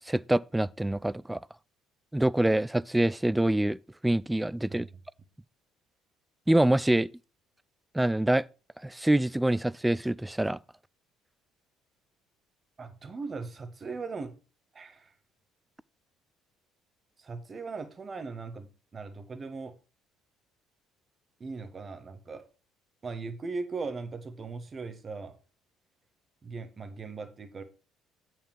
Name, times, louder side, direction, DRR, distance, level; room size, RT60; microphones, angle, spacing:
voice 1, 0.0-1.4 2.1-3.8 4.0-4.9 6.5-7.1 7.9-8.5 8.8-10.6, right 1 dB, 10° right, 0.3 m, -25 dB
voice 2, 12.8-14.3 14.7-15.1 17.2-19.7 21.4-22.4 23.0-25.3 26.4-27.6, right 4 dB, 30° right, 1.4 m, -39 dB
8.8 x 7.7 x 3.2 m
figure-of-eight pair, 55°, 0 cm